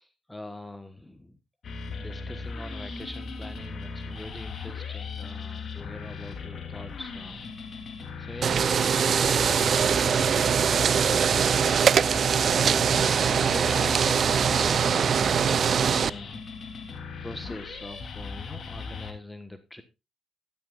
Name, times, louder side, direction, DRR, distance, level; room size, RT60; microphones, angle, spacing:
voice 1, 0.0-1.4 2.0-7.7 8.2-11.9 12.2-16.4 17.2-19.8, left 1 dB, 10° left, 9 dB, 1.2 m, -43 dB
sound 1, 1.6-19.1, left 5 dB, 50° left, 3.1 m, -38 dB
sound 2, 8.4-16.1, right 7 dB, 50° right, 0.5 m, -22 dB
14.0 x 12.0 x 2.5 m, 0.26 s
cardioid pair, 90°, 0 cm